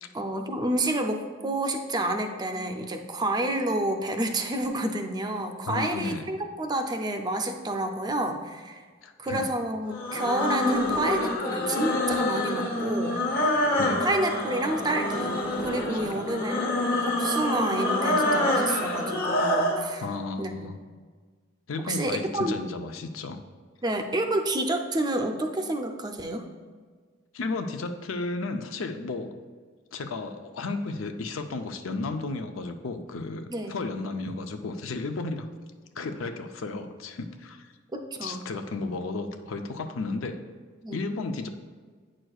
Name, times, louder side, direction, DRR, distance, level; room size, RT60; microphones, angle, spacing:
voice 1, 0.1-8.8 9.2-13.3 14.0-16.8 17.1-20.0 20.4-20.7 21.8-22.6 23.8-26.5 33.5-33.8 37.9-38.5 40.8-41.0, right 1 dB, 20° right, 5 dB, 0.5 m, -29 dB
voice 2, 5.7-6.3 9.0-9.5 13.7-14.1 20.0-20.8 21.7-23.4 27.3-29.4 29.9-35.5 36.0-37.7 38.2-40.3 40.9-41.5, left 3 dB, 85° left, 7 dB, 0.5 m, -33 dB
sound 1, 9.9-19.8, left 1 dB, 50° left, 1.2 m, -26 dB
8.9 x 6.3 x 2.3 m, 1.5 s
head